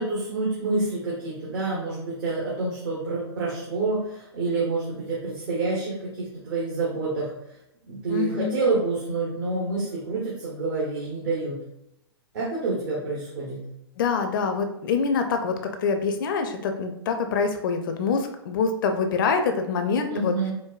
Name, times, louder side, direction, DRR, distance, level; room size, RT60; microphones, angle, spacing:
voice 1, 0.0-7.3 7.8-11.6 12.3-13.6 20.1-20.5, right 3 dB, 55° right, -6 dB, 1.1 m, -28 dB
voice 2, 8.1-8.6 14.0-20.3, left 5 dB, 50° left, 6 dB, 0.4 m, -25 dB
4.5 x 2.2 x 2.3 m, 0.83 s
figure-of-eight pair, 110°, 14 cm